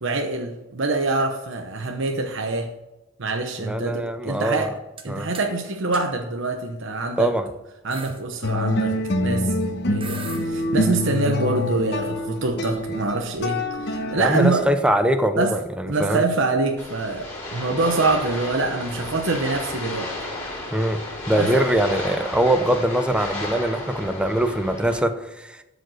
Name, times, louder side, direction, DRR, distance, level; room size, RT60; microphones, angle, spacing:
voice 1, 0.0-2.7 3.2-4.7 5.0-7.3 7.8-9.0 9.2-9.6 9.9-14.7 15.4-15.5 15.9-17.3 17.5-20.1 21.3-21.6, right 3 dB, 60° right, 3 dB, 1.0 m, -25 dB
voice 2, 3.6-4.7 5.1-5.3 7.2-7.5 14.1-16.3 20.7-21.0 21.3-25.6, right 1 dB, 5° right, 8 dB, 0.6 m, -22 dB
sound 1, 4.6-5.1 5.3-5.5 5.9-6.0 6.9-7.1 7.5-7.6 7.9-8.2 9.6-9.7 10.0-10.5, right 4 dB, 25° right, 1.1 m, -38 dB
sound 2, 8.4-14.6, left 1 dB, 55° left, 1.1 m, -26 dB
sound 3, 16.8-25.0, left 2 dB, 10° left, 3.8 m, -33 dB
12.0 x 5.2 x 6.4 m, 1.0 s
head